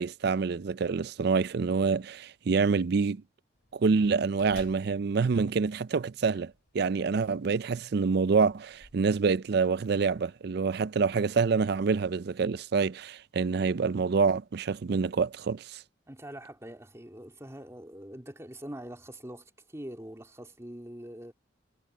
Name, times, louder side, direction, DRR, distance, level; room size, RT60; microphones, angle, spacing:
voice 1, 0.0-3.2 3.7-15.8, right 5 dB, 55° right, 0.4 m, -27 dB
sound 1, 3.5-12.1, left 2 dB, 50° left, 3.7 m, -58 dB
voice 2, 16.1-21.3, right 1 dB, 15° right, 2.9 m, -44 dB
head